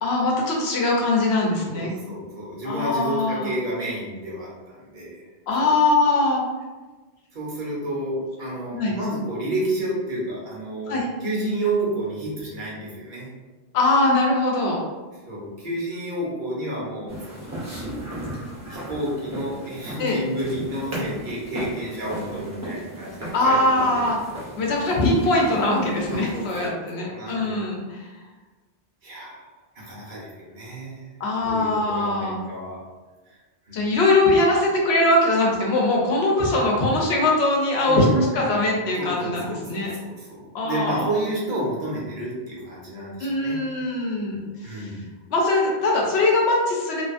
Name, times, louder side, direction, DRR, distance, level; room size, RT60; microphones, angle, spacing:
voice 1, 0.0-1.9 2.6-3.5 5.5-6.4 8.7-9.0 10.9-11.1 13.7-14.8 20.0-20.2 23.3-24.2 24.6-28.1 31.2-32.4 33.7-39.9 40.5-41.1 43.2-44.9 45.3-47.0, left 2 dB, 85° left, -1 dB, 0.9 m, -21 dB
voice 2, 1.7-5.2 5.6-5.7 7.3-10.9 11.2-13.3 15.3-17.6 18.7-24.1 26.1-27.6 29.0-29.5 29.7-31.1 31.4-32.8 33.3-33.4 33.7-33.9 37.8-38.6 39.0-43.6 44.6-45.1, right 1 dB, 50° right, -6 dB, 0.9 m, -30 dB
sound 1, 17.1-26.7, right 1 dB, 20° right, 0.6 m, -35 dB
2.7 x 2.4 x 2.4 m, 1.2 s
omnidirectional pair, 1.1 m